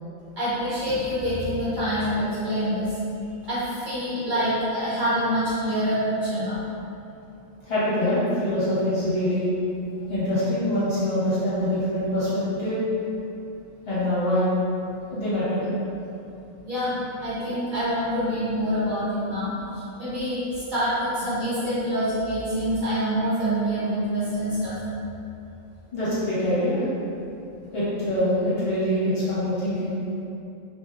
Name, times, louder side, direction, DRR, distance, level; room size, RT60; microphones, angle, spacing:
voice 1, 0.4-3.0 3.5-6.6 16.6-24.8, equal, 40° right, -14 dB, 1.2 m, -26 dB
voice 2, 7.6-9.5 10.1-12.8 13.9-14.5 15.1-15.7 25.9-26.9 27.7-29.9, left 1 dB, 50° left, -11 dB, 1.0 m, -24 dB
3.3 x 2.6 x 2.3 m, 2.8 s
omnidirectional pair, 1.4 m